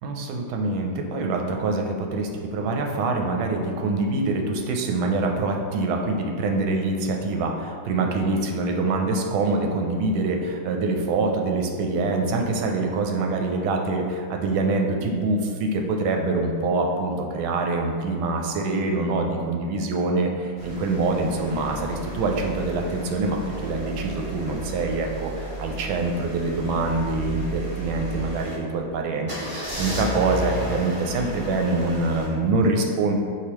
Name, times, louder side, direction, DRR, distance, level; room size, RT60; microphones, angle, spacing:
voice 1, 0.0-33.1, right 3 dB, 85° right, 2 dB, 1.4 m, -25 dB
sound 1, 20.6-28.5 29.3-32.3, right 1 dB, 35° right, 0.5 m, -34 dB
4.8 x 3.3 x 2.9 m, 2.2 s
omnidirectional pair, 2.2 m